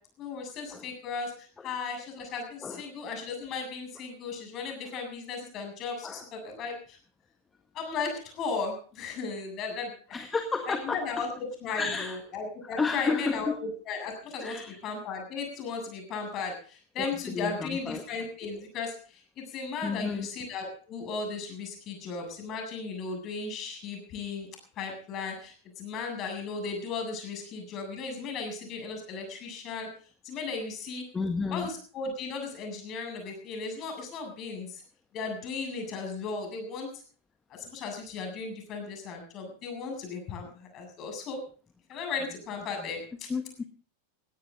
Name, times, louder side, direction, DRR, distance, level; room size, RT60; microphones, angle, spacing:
voice 1, 0.2-7.0 7.7-10.2 10.8-24.5 24.8-29.9 30.2-31.0 31.5-34.8 35.1-36.9 37.5-41.4 41.9-43.3, left 4 dB, 35° left, 3 dB, 7.7 m, -36 dB
voice 2, 10.1-11.0 11.7-12.2 12.8-13.5 14.4-14.8 17.0-18.0 18.4-18.5 19.8-20.3 31.1-31.7 43.3-43.6, left 4 dB, 15° left, 7 dB, 1.5 m, -31 dB
19.5 x 16.5 x 3.8 m, 0.42 s
figure-of-eight pair, 90°, 0 cm